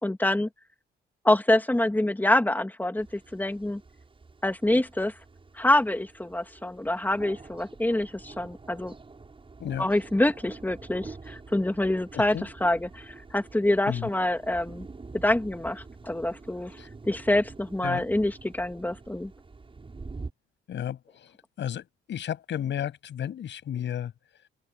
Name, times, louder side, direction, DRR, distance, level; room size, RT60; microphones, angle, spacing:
voice 1, 0.0-0.5 1.2-3.8 4.4-5.2 5.6-8.9 9.8-14.9 15.1-16.7 17.0-19.3, left 1 dB, 10° left, 2.6 m, -26 dB
sound 1, 3.0-20.3, right 3 dB, 25° right, 7.4 m, -46 dB
voice 2, 12.1-12.5 13.9-14.1 16.8-16.9 17.8-18.0 20.7-24.1, left 10 dB, 65° left, 7.4 m, -33 dB
open air
cardioid pair, 90°, 20 cm